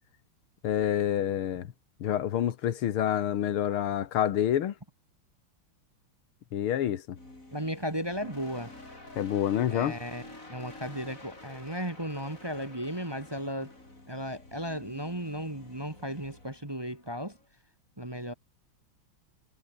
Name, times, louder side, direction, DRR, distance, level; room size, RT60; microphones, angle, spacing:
voice 1, 0.6-1.7 2.0-4.7 6.5-7.2 9.2-10.0, left 10 dB, 90° left, 2.1 m, -28 dB
sound 1, 7.1-17.5, left 2 dB, 35° left, 6.7 m, -50 dB
voice 2, 7.5-8.7 9.7-13.7 14.1-17.3 18.0-18.3, equal, 15° right, 1.4 m, -35 dB
omnidirectional pair, 2.3 m